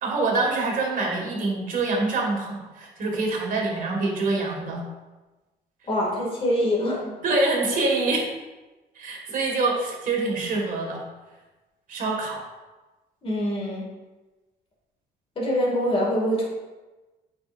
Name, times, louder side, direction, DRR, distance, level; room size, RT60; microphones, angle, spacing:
voice 1, 0.0-4.8 7.0-8.3 9.0-11.0 11.9-12.4, right 3 dB, 55° right, 0 dB, 1.9 m, -25 dB
voice 2, 5.9-7.0 13.2-13.9 15.4-16.5, equal, 35° left, -4 dB, 2.2 m, -24 dB
8.4 x 5.5 x 2.6 m, 1.2 s
cardioid pair, 110°, 17 cm